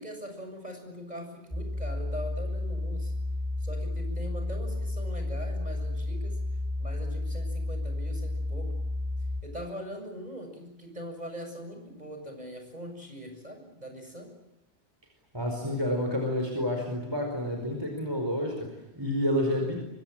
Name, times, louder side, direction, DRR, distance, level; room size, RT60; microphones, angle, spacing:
voice 1, 0.0-3.1 3.6-6.4 6.8-8.7 9.4-14.3, equal, 40° right, 4 dB, 7.1 m, -41 dB
sound 1, 1.5-9.4, left 2 dB, 5° left, 4.7 m, -32 dB
voice 2, 15.3-19.8, left 1 dB, 20° right, 3 dB, 4.9 m, -29 dB
24.5 x 24.5 x 8.9 m, 0.93 s
omnidirectional pair, 1.1 m